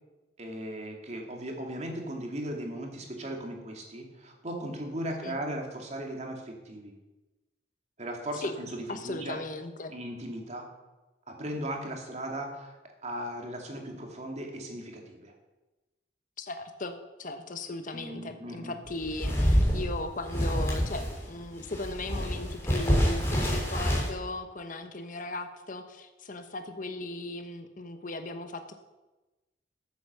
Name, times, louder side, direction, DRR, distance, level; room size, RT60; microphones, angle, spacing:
voice 1, 0.4-6.9 8.0-9.4 9.9-10.6 11.3-12.8 13.0-15.3 17.9-18.7, right 1 dB, 40° right, 2 dB, 2.5 m, -37 dB
voice 2, 8.9-9.9 16.4-16.9 17.2-28.7, left 2 dB, 45° left, 7 dB, 1.1 m, -37 dB
sound 1, 18.9-21.2 21.6-24.1, equal, 15° left, 3.7 m, -27 dB
14.0 x 8.2 x 6.7 m, 1.1 s
head